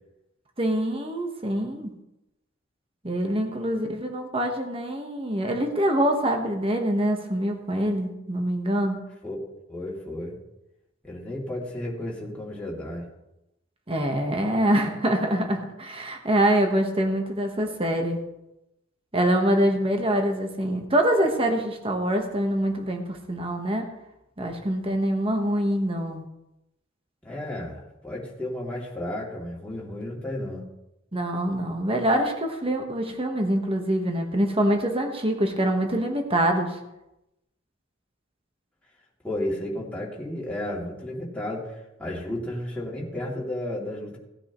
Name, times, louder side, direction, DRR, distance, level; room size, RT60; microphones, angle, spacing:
voice 1, 0.6-1.9 3.0-9.0 13.9-18.2 19.1-23.9 24.4-26.2 31.1-36.8, right 1 dB, 30° right, 3 dB, 1.3 m, -25 dB
voice 2, 9.7-10.4 11.0-13.1 27.2-30.6 39.2-44.2, left 1 dB, 5° left, -5 dB, 2.8 m, -33 dB
18.0 x 9.4 x 3.1 m, 0.91 s
head